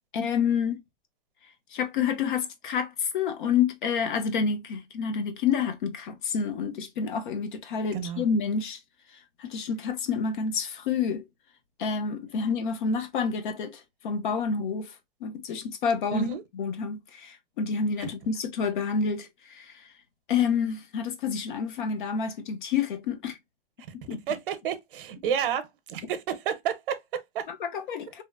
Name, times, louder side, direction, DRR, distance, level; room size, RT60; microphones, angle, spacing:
voice 1, 0.1-0.8 1.7-8.8 9.4-11.2 11.8-14.9 15.2-16.3 16.6-19.7 20.3-23.4 24.1-24.2 27.5-28.2, left 6 dB, 55° left, 0.6 m, -28 dB
voice 2, 7.9-8.2 16.1-16.4 24.3-27.5, right 8 dB, 60° right, 0.6 m, -30 dB
2.8 x 2.0 x 2.2 m
supercardioid pair, 165°, 30 cm